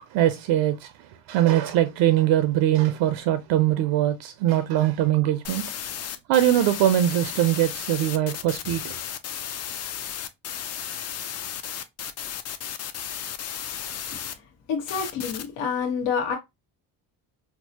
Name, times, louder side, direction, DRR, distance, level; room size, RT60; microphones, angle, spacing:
voice 1, 0.0-5.6 6.3-9.0, right 12 dB, 75° right, 0.6 m, -22 dB
sound 1, 5.4-14.3 14.9-15.4, left 9 dB, 40° left, 0.4 m, -34 dB
voice 2, 14.7-16.3, left 6 dB, 80° left, 1.1 m, -27 dB
4.5 x 2.0 x 2.7 m
cardioid pair, 125°, 44 cm